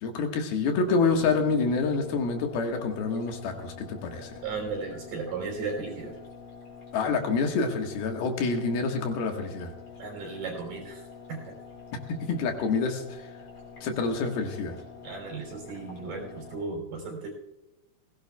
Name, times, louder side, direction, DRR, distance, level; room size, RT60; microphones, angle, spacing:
voice 1, 0.0-4.4 6.9-9.7 12.2-13.3 13.8-14.7, left 4 dB, 75° left, 3 dB, 3.4 m, -27 dB
sound 1, 1.1-16.6, left 5 dB, 35° left, 3.4 m, -47 dB
voice 2, 4.4-6.1 10.0-11.0 11.3-11.4 15.0-17.3, right 4 dB, 65° right, 0 dB, 5.0 m, -35 dB
21.0 x 16.5 x 2.3 m, 1.0 s
omnidirectional pair, 4.4 m